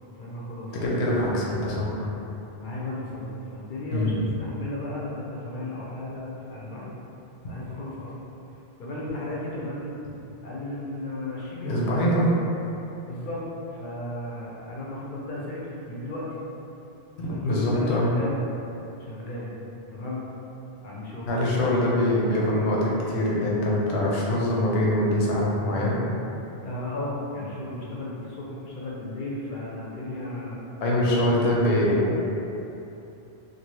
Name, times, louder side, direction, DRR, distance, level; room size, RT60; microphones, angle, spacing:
voice 1, 0.2-0.9 2.6-7.0 7.5-8.1 8.8-9.9 10.4-11.8 13.1-15.6 15.9-16.3 17.3-18.4 19.0-19.5 19.9-20.2 20.8-21.3 25.6-25.8 26.6-30.6, left 1 dB, 60° left, -5 dB, 0.6 m, -34 dB
voice 2, 0.8-2.1 3.9-4.2 11.6-12.3 17.2-18.1 21.3-26.0 30.8-32.2, left 1 dB, 85° left, -5 dB, 0.9 m, -23 dB
2.6 x 2.4 x 3.0 m, 2.9 s
omnidirectional pair, 1.1 m